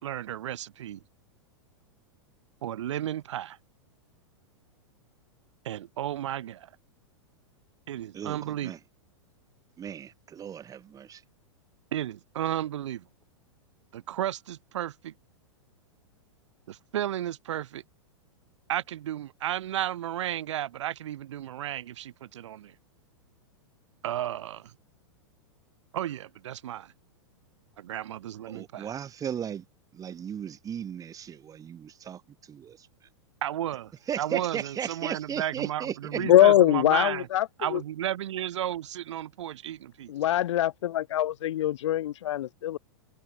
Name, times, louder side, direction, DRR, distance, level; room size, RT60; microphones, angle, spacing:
voice 1, 0.0-1.0 2.6-3.6 5.6-6.7 7.9-8.7 11.9-13.0 13.9-15.1 16.7-17.8 18.7-22.7 24.0-24.7 25.9-26.9 27.8-28.9 33.4-33.9 34.2-37.3 37.6-40.1, right 12 dB, 70° right, 3.1 m, -33 dB
voice 2, 8.1-8.8 9.8-11.2 28.5-29.6 29.9-32.2 32.5-32.9 34.1-36.2, right 8 dB, 20° right, 1.6 m, -36 dB
voice 3, 36.2-37.8 40.1-42.8, left 12 dB, 70° left, 0.7 m, -23 dB
hypercardioid pair, 115°, 16 cm